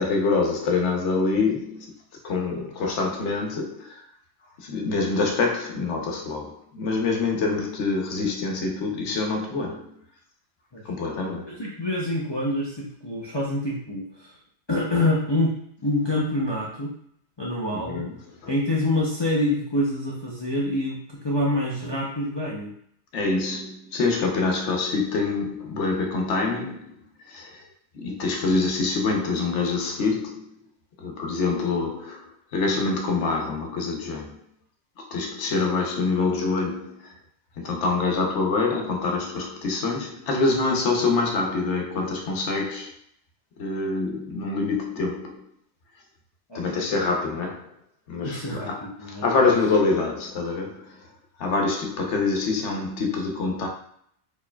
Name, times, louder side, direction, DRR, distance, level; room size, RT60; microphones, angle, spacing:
voice 1, 0.0-1.9 2.2-4.0 4.6-9.9 10.8-11.6 17.7-18.2 23.1-27.0 27.3-27.6 27.9-30.5 31.0-32.3 32.5-34.4 35.0-37.1 37.6-42.9 43.6-45.4 46.5-47.6 48.1-51.0 51.4-53.7, left 3 dB, 90° left, 1.0 m, -25 dB
voice 2, 11.5-14.3 14.7-16.9 17.4-18.0 18.5-22.7 46.5-46.9 48.2-49.5, left 1 dB, 30° left, 0.5 m, -26 dB
4.4 x 3.1 x 2.2 m
omnidirectional pair, 1.2 m